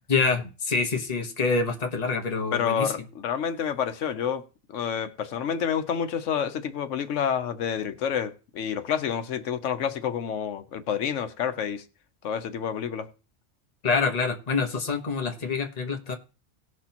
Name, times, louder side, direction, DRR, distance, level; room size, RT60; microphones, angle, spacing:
voice 1, 0.1-2.9 13.8-16.1, left 4 dB, 35° left, 1.2 m, -26 dB
voice 2, 2.5-4.4 4.7-11.8 12.2-13.1, left 8 dB, 85° left, 1.1 m, -28 dB
18.5 x 6.3 x 2.9 m
omnidirectional pair, 1.2 m